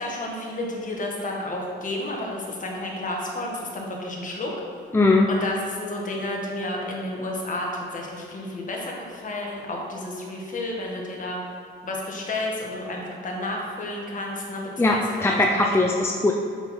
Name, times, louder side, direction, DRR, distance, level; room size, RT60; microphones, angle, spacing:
voice 1, 0.0-4.5 5.3-11.4 11.8-15.4, left 1 dB, 40° left, -1 dB, 1.7 m, -31 dB
voice 2, 4.9-5.3 14.8-16.3, left 2 dB, 10° left, 0 dB, 0.6 m, -20 dB
6.9 x 5.6 x 4.4 m, 2.3 s
cardioid pair, 90°, 20 cm